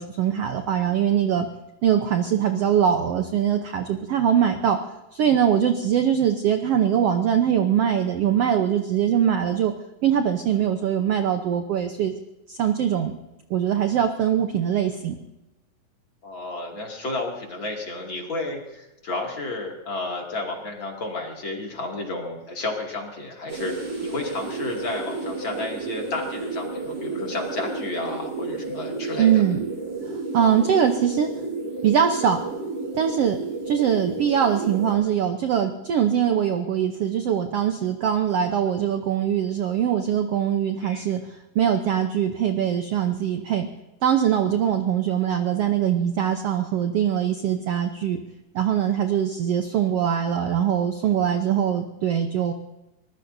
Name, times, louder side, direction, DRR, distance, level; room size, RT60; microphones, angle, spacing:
voice 1, 0.0-1.5 1.8-4.8 5.1-9.7 10.0-12.1 12.5-13.2 13.5-15.2 29.2-29.7 30.0-31.3 31.8-32.4 32.9-33.4 33.7-43.7 44.0-48.2 48.5-52.5, right 9 dB, 80° right, 6 dB, 1.3 m, -22 dB
voice 2, 16.2-29.4 40.8-41.1, left 2 dB, 35° left, 0 dB, 2.9 m, -32 dB
sound 1, 23.5-34.9, right 3 dB, 65° right, 6.7 m, -32 dB
24.0 x 20.0 x 2.7 m, 0.98 s
omnidirectional pair, 4.0 m